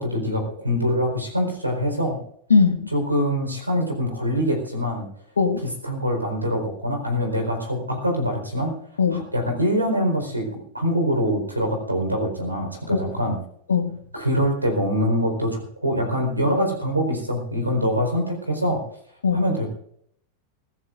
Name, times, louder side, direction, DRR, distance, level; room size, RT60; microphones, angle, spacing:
voice 1, 0.0-2.2 2.9-5.1 5.8-8.7 9.1-13.4 14.1-18.8 19.3-19.7, equal, 85° right, 3 dB, 4.4 m, -24 dB
voice 2, 2.5-2.9 5.4-5.7 9.0-9.3 12.9-13.0 13.7-14.0 19.2-19.4, left 5 dB, 70° left, 8 dB, 1.7 m, -20 dB
23.5 x 16.5 x 2.6 m, 0.68 s
figure-of-eight pair, 90°, 0 cm